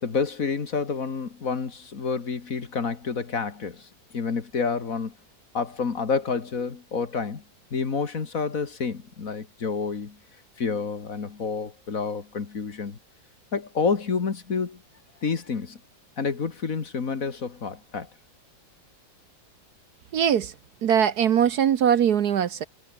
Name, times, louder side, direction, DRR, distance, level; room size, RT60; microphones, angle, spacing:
voice 1, 0.0-5.1 5.5-7.4 7.7-10.2 10.6-13.0 13.5-14.8 15.2-15.8 16.2-18.1, left 5 dB, 50° left, 2.1 m, -29 dB
voice 2, 20.1-20.5 20.8-22.6, right 9 dB, 60° right, 1.4 m, -21 dB
omnidirectional pair, 2.0 m